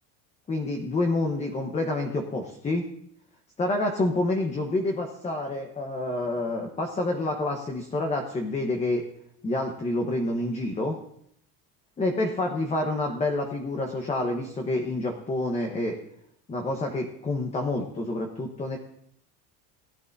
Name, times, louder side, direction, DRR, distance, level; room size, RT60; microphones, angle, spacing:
voice 1, 0.5-2.8 3.6-9.1 9.4-11.0 12.0-16.0 16.5-18.8, left 2 dB, 20° left, 3 dB, 1.1 m, -28 dB
20.5 x 10.5 x 2.7 m, 0.70 s
cardioid pair, 155°, 37 cm